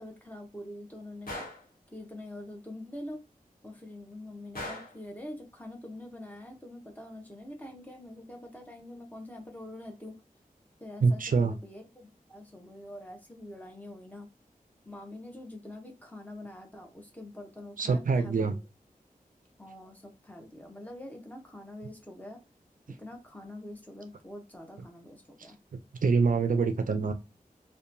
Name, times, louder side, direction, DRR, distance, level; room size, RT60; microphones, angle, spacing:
voice 1, 0.0-1.5 1.9-3.2 3.6-10.1 10.8-14.3 14.8-18.6 19.6-22.4 23.0-25.6, left 1 dB, 10° left, 0.7 m, -45 dB
Gunshot gunfire, 1.3-1.7 4.5-5.0, left 1 dB, 70° left, 1.1 m, -39 dB
voice 2, 11.0-11.5 17.8-18.5 26.0-27.1, right 4 dB, 65° right, 0.4 m, -25 dB
2.8 x 2.2 x 2.5 m
wide cardioid pair, 75°, 15 cm